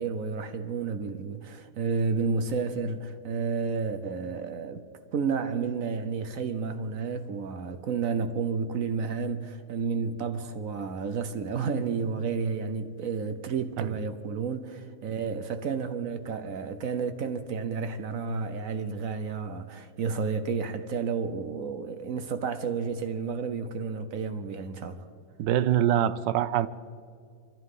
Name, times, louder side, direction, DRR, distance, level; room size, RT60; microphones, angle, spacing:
voice 1, 0.0-4.8 5.1-25.0, right 5 dB, 60° right, 1.0 m, -31 dB
voice 2, 25.4-26.7, right 11 dB, 80° right, 1.2 m, -24 dB
24.0 x 14.5 x 3.7 m
omnidirectional pair, 2.0 m